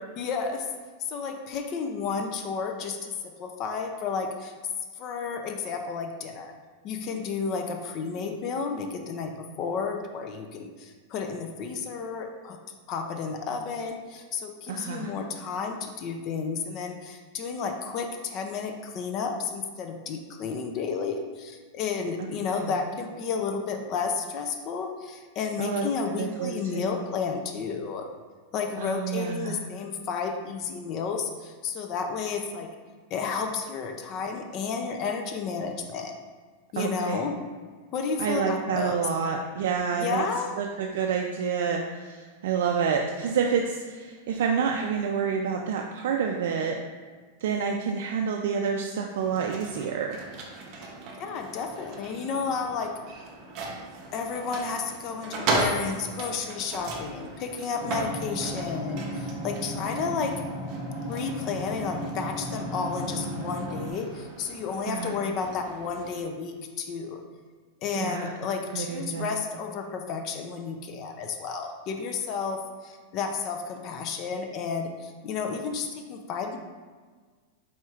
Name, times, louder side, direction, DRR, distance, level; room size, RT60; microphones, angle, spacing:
voice 1, 0.2-0.7 1.1-3.1 3.4-4.5 5.0-6.5 6.8-12.6 12.9-28.1 28.5-32.7 33.1-36.1 36.7-37.4 37.9-39.1 40.0-40.5 51.2-52.9 54.1-60.4 61.1-67.2 67.8-76.6, left 5 dB, 35° left, 4 dB, 0.4 m, -32 dB
voice 2, 14.7-15.1 22.2-22.3 22.6-22.7 25.6-25.8 26.2-27.0 28.8-29.6 36.8-37.2 38.2-40.2 40.6-46.8 47.4-50.2 64.9-65.2 67.9-68.3 68.7-69.3, right 6 dB, 70° right, 2 dB, 0.3 m, -28 dB
sound 1, 49.1-66.2, right 2 dB, 40° right, 0.7 m, -37 dB
sound 2, 57.8-63.9, equal, 10° right, 0.9 m, -35 dB
4.4 x 4.2 x 2.4 m, 1.5 s
supercardioid pair, 160°, 0 cm